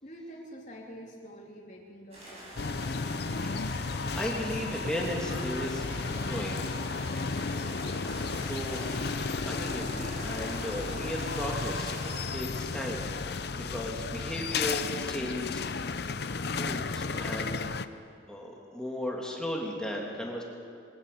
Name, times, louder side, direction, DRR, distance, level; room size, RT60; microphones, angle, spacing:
voice 1, 0.0-3.0, equal, 40° left, -2 dB, 3.4 m, -47 dB
sound 1, 2.1-12.2, right 1 dB, 30° right, 7.5 m, -44 dB
sound 2, 2.6-17.8, left 4 dB, 55° left, 0.6 m, -33 dB
voice 2, 4.1-7.4 8.5-8.9 9.5-16.0 16.4-17.6 18.3-20.4, equal, 5° left, -2 dB, 2.6 m, -36 dB
22.0 x 18.0 x 6.8 m, 2.4 s
head